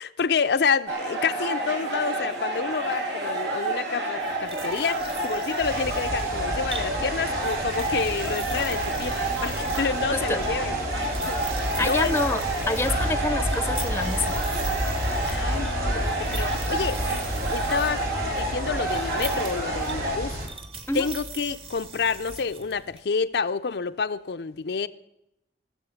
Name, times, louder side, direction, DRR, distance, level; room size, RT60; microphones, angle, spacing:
voice 1, 0.0-11.4 11.8-12.2 13.2-13.3 15.3-17.2 17.5-20.3 20.9-24.9, left 5 dB, 75° left, 0.5 m, -28 dB
sound 1, 0.9-20.2, right 2 dB, 80° right, 2.7 m, -29 dB
sound 2, 4.2-23.0, right 4 dB, 30° right, 1.2 m, -41 dB
sound 3, 5.6-20.5, equal, 55° right, 3.8 m, -31 dB
voice 2, 11.8-14.4 20.9-21.1, left 2 dB, 15° left, 0.6 m, -27 dB
16.0 x 7.5 x 7.1 m
head